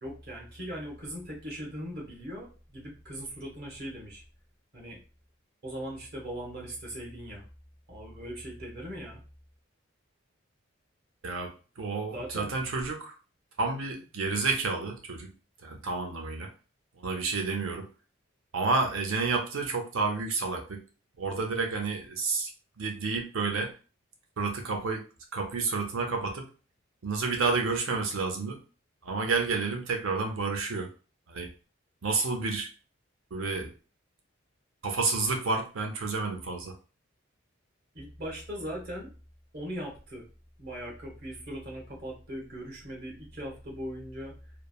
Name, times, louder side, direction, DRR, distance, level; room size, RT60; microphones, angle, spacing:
voice 1, 0.0-4.2 4.7-5.0 5.6-7.4 7.9-9.2 12.1-12.5 37.9-39.1 39.5-40.2 40.6-44.3, equal, 50° right, -2 dB, 1.0 m, -39 dB
voice 2, 11.2-13.2 13.6-15.3 15.6-16.5 17.0-17.9 18.5-20.8 21.2-22.5 22.8-23.7 24.4-25.0 25.3-26.5 27.0-28.6 29.0-30.9 31.3-31.5 32.0-32.7 33.3-33.7 34.8-36.7, right 4 dB, 80° right, 3 dB, 0.6 m, -30 dB
3.1 x 2.0 x 2.3 m, 0.35 s
head